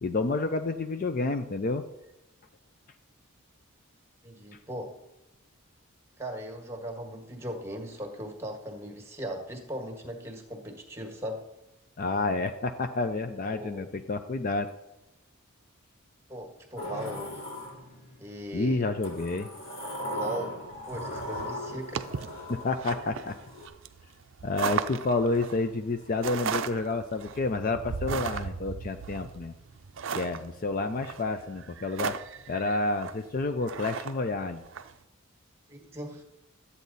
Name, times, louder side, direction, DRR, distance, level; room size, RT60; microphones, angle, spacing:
voice 1, 0.0-1.8 12.0-14.7 18.5-19.5 22.5-23.4 24.4-29.5 30.2-32.2 32.5-34.6, left 3 dB, 40° left, 8 dB, 0.4 m, -29 dB
voice 2, 4.2-4.9 6.2-11.4 13.5-13.8 16.3-17.4 18.2-18.8 20.0-20.6 20.9-22.0 35.7-36.2, equal, 10° right, 2 dB, 1.5 m, -38 dB
Sliding door, 16.8-18.3 19.0-23.7, equal, 70° left, 2.9 m, -38 dB
sound 1, 21.2-34.9, right 6 dB, 60° right, 0.5 m, -36 dB
12.5 x 8.3 x 4.0 m, 0.95 s
head